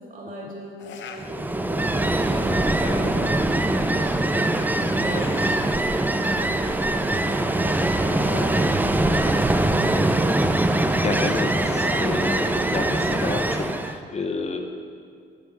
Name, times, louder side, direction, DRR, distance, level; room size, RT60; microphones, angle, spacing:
voice 1, 0.0-4.5 5.0-5.3 5.8-10.3, right 1 dB, 45° right, -3 dB, 2.8 m, -38 dB
sound 1, 0.8-1.3 1.8-2.2 4.3-5.6 7.3-8.8 10.8-12.1, left 7 dB, 70° left, 0.8 m, -41 dB
Ocean, 1.2-14.0, right 1 dB, 10° right, 0.5 m, -22 dB
voice 2, 10.7-14.6, left 3 dB, 35° left, 4 dB, 0.8 m, -30 dB
9.4 x 7.2 x 6.2 m, 2.3 s
cardioid pair, 90°, 20 cm